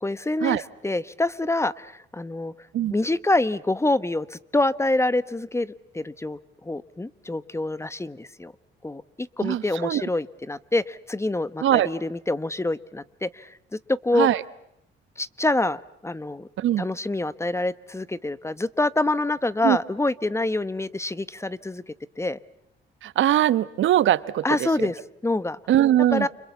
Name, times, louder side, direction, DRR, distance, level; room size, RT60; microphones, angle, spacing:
voice 1, 0.0-2.5 2.9-8.5 8.8-14.3 15.2-16.5 16.8-21.8 22.2-22.4 24.4-25.6 26.1-26.3, left 2 dB, 15° left, 17 dB, 1.1 m, -26 dB
voice 2, 9.4-10.0 11.6-11.9 14.1-14.4 16.6-16.8 19.6-19.8 23.0-24.4 24.8-24.9 25.7-26.3, right 12 dB, 75° right, 17 dB, 1.1 m, -21 dB
29.5 x 26.5 x 7.1 m, 0.77 s
cardioid pair, 90°, 20 cm